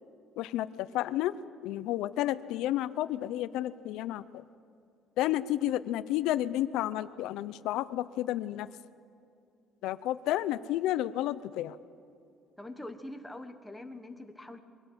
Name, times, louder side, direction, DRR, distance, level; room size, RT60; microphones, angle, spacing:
voice 1, 0.4-1.3 1.6-4.4 5.2-8.7 9.8-11.8, left 13 dB, 75° left, 14 dB, 0.7 m, -31 dB
voice 2, 12.6-14.6, left 1 dB, 5° left, 6 dB, 1.3 m, -43 dB
24.0 x 17.0 x 8.0 m, 2.5 s
cardioid pair, 165°, 0 cm